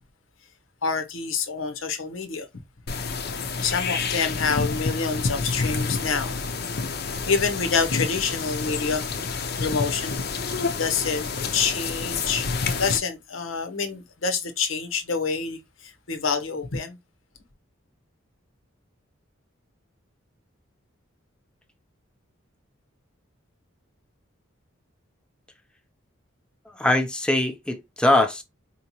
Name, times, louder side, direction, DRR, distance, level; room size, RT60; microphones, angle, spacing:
voice 1, 0.8-2.5 3.6-6.4 7.0-10.2 10.8-17.0, left 5 dB, 80° left, 0.8 m, -27 dB
sound 1, 2.9-13.0, left 4 dB, 50° left, 0.6 m, -29 dB
voice 2, 26.7-28.4, left 1 dB, 5° left, 0.5 m, -22 dB
4.5 x 2.8 x 2.8 m
head